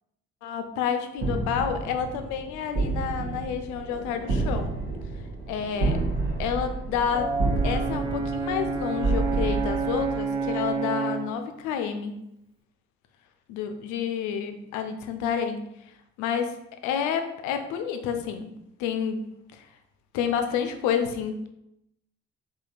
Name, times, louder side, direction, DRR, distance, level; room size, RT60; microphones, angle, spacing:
voice 1, 0.4-4.7 5.5-6.0 6.4-7.3 7.6-12.2 13.5-15.6 16.2-18.5 18.8-19.2 19.5-19.7 20.1-21.5, left 7 dB, 60° left, 7 dB, 0.5 m, -29 dB
sound 1, 1.2-10.7, right 3 dB, 65° right, 0.9 m, -30 dB
Brass instrument, 7.1-11.4, right 4 dB, 15° right, 0.3 m, -29 dB
3.6 x 2.2 x 2.4 m, 0.82 s
figure-of-eight pair, 50°, 34 cm